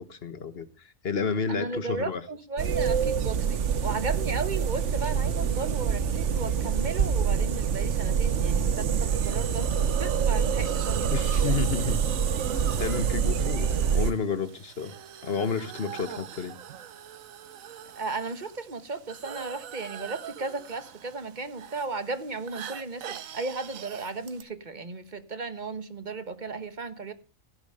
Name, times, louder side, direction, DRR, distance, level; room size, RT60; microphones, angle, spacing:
voice 1, 0.0-2.2 11.1-12.0 12.7-14.9 15.2-16.5, left 5 dB, 50° left, 1.4 m, -31 dB
voice 2, 1.5-9.7 10.0-11.1 17.9-27.1, right 3 dB, 35° right, 1.4 m, -35 dB
sound 1, 2.6-14.1, right 7 dB, 65° right, 1.3 m, -26 dB
Hiss, 9.0-24.4, right 8 dB, 80° right, 1.3 m, -40 dB
16.5 x 7.2 x 6.7 m
omnidirectional pair, 1.4 m